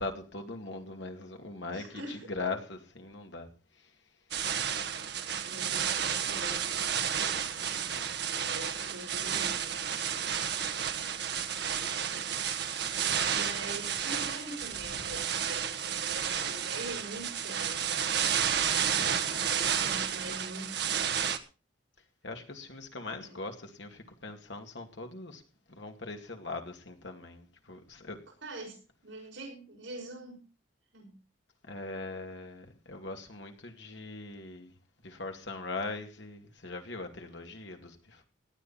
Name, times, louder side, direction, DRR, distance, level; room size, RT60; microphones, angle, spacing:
voice 1, 0.0-3.5 7.7-8.1 14.9-15.2 17.1-17.2 18.7-19.4 22.2-25.4 25.7-28.2 31.7-34.7 35.0-38.2, left 3 dB, 65° left, 2.4 m, -41 dB
voice 2, 1.7-2.3 5.5-7.1 8.3-10.2 11.0-12.4 13.3-18.1 19.2-21.2 23.2-23.4 28.4-28.7 29.0-30.5 30.9-31.2, right 2 dB, 70° right, 6.0 m, -44 dB
sound 1, 4.3-21.4, right 8 dB, 55° right, 1.2 m, -31 dB
18.0 x 11.0 x 4.3 m
head